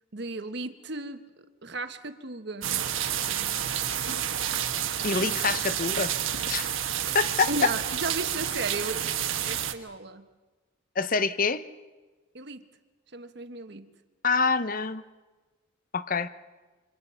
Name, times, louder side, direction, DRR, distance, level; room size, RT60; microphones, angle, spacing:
voice 1, 0.1-2.7 7.5-10.2 12.3-12.6 13.1-13.9, right 3 dB, 55° right, 9 dB, 1.3 m, -35 dB
sound 1, 2.6-9.7, right 10 dB, 80° right, 1.4 m, -29 dB
voice 2, 5.0-6.1 6.5-6.7 7.1-7.5 11.0-11.7 14.2-15.0 15.9-16.3, left 4 dB, 40° left, 13 dB, 0.8 m, -26 dB
27.5 x 26.0 x 5.7 m, 1.2 s
head